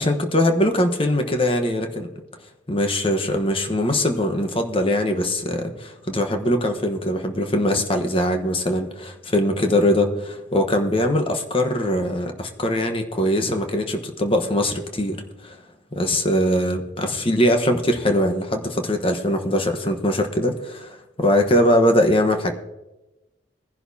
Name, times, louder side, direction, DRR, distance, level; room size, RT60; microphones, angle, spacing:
voice 1, 0.0-2.1 2.7-15.6 15.9-22.5, left 1 dB, 30° left, 5 dB, 1.1 m, -21 dB
20.5 x 11.0 x 2.8 m, 1.0 s
head